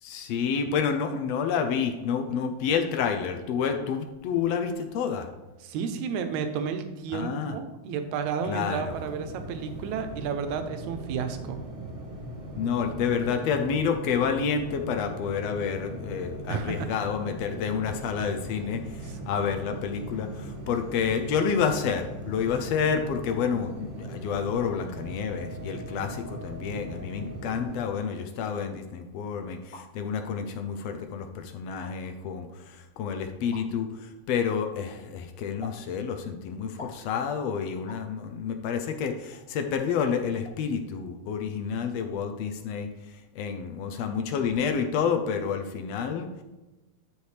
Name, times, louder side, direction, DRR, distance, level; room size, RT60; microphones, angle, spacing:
voice 1, 0.0-5.3 7.1-7.6 8.5-8.9 12.5-46.4, left 6 dB, 80° left, 6 dB, 1.5 m, -29 dB
voice 2, 5.6-11.6 16.5-16.9, right 6 dB, 75° right, 8 dB, 2.0 m, -32 dB
sound 1, 8.8-27.8, right 2 dB, 45° right, 1.7 m, -40 dB
sound 2, 29.7-29.9 30.8-30.9 31.7-31.9 33.5-33.7 35.6-35.8 36.8-37.0 37.9-38.1 39.3-39.4 40.0-40.2 40.4-40.6, left 3 dB, 30° left, 2.5 m, -44 dB
12.0 x 4.8 x 3.3 m, 1.1 s
omnidirectional pair, 3.6 m